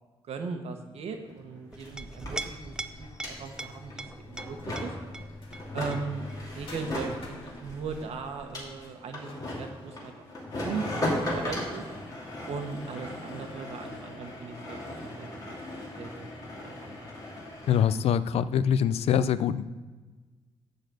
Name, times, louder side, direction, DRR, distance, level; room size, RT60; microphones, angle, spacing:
voice 1, 0.3-4.9 5.7-6.3 6.5-10.2 10.6-11.8 12.5-16.3 16.6-17.1, right 5 dB, 85° right, 5 dB, 1.3 m, -38 dB
sound 1, 1.1-1.2 1.3-18.0, left 1 dB, 35° left, 2.4 m, -37 dB
Chink clink, 1.7-8.8, right 2 dB, 5° right, 0.4 m, -43 dB
sound 2, 3.0-6.0 6.7-10.5, left 2 dB, 60° left, 1.7 m, -52 dB
voice 2, 17.7-19.7, left 8 dB, 80° left, 15 dB, 0.4 m, -24 dB
11.5 x 4.1 x 7.7 m, 1.3 s
wide cardioid pair, 160°, 10 cm